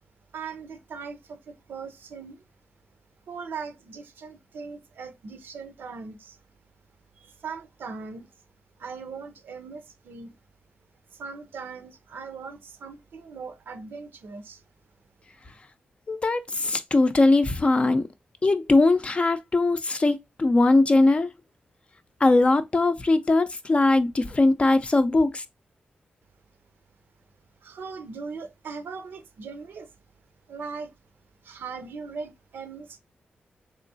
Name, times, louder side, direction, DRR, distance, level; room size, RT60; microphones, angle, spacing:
voice 1, 0.3-2.4 3.3-6.4 7.1-8.3 8.8-10.4 11.1-14.6 27.6-29.9 30.5-30.9 31.4-33.0, right 5 dB, 85° right, 0.6 m, -39 dB
voice 2, 16.1-18.0 18.4-21.3 22.2-25.4, left 2 dB, 35° left, 0.5 m, -20 dB
3.6 x 3.0 x 2.6 m
cardioid pair, 80°, 3 cm